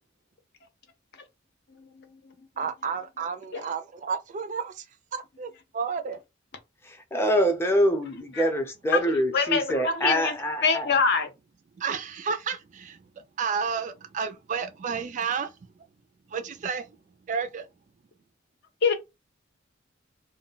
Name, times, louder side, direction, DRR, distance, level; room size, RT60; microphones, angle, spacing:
voice 1, 1.8-2.3 3.5-3.7 8.9-9.0 9.3-10.3 10.6-11.3 18.8-18.9, left 5 dB, 55° left, 0.7 m, -25 dB
voice 2, 2.6-4.8 5.1-6.2 11.8-13.0 13.4-15.5 16.3-17.0 17.3-17.7, right 6 dB, 40° right, 0.3 m, -31 dB
voice 3, 6.8-10.9, equal, 10° left, 0.5 m, -25 dB
2.2 x 2.1 x 3.8 m
head